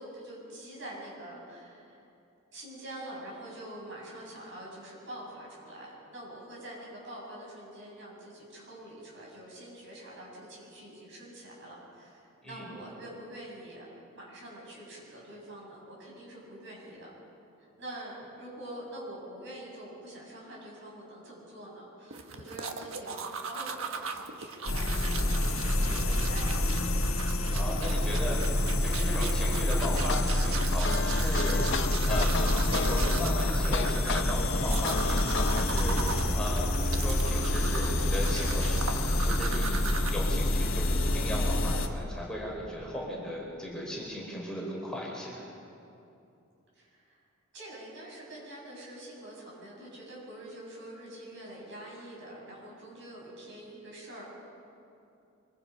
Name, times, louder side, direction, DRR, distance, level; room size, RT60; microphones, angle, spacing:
voice 1, 0.0-2.0 2.5-17.1 17.8-26.7 28.7-29.0 46.7-47.2 47.5-54.2, right 1 dB, 60° right, -4 dB, 7.9 m, -45 dB
sound 1, 22.1-40.1, right 5 dB, 80° right, 1.4 m, -39 dB
sound 2, 24.7-41.9, left 1 dB, 75° left, 1.6 m, -27 dB
voice 2, 27.5-28.4 28.8-39.8 40.1-45.4, equal, 5° left, -4 dB, 4.7 m, -37 dB
sound 3, 29.8-35.6, left 5 dB, 60° left, 0.7 m, -34 dB
25.0 x 24.5 x 5.5 m, 2.7 s
head